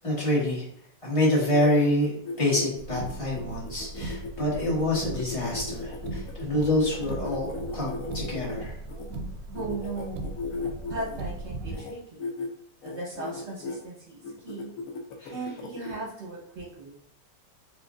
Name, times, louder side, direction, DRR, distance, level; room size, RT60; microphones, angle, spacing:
voice 1, 0.0-0.7 1.0-2.1 2.4-8.8 15.2-15.3, left 1 dB, 20° left, -6 dB, 1.1 m, -26 dB
sound 1, 1.3-9.1 9.5-11.2 11.6-11.9 12.2-12.5 12.8-13.8 14.2-16.0, left 3 dB, 85° left, 0.7 m, -37 dB
Car, 2.7-11.8, right 2 dB, 85° right, 1.3 m, -38 dB
voice 2, 9.5-10.3 10.9-12.3 12.8-14.7 15.3-16.9, right 2 dB, 50° right, -4 dB, 0.9 m, -37 dB
4.6 x 2.4 x 2.4 m, 0.70 s
omnidirectional pair, 2.0 m